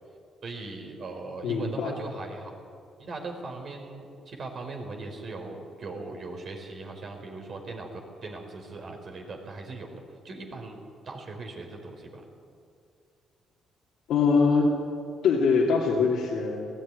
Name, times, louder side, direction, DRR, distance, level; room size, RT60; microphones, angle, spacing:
voice 1, 0.4-2.5 3.0-12.2, right 3 dB, 55° right, 3 dB, 4.4 m, -39 dB
voice 2, 1.4-1.9 14.1-14.7 15.2-16.7, left 4 dB, 80° left, -3 dB, 2.6 m, -23 dB
19.0 x 14.0 x 10.0 m, 2.4 s
cardioid pair, 90°, 0 cm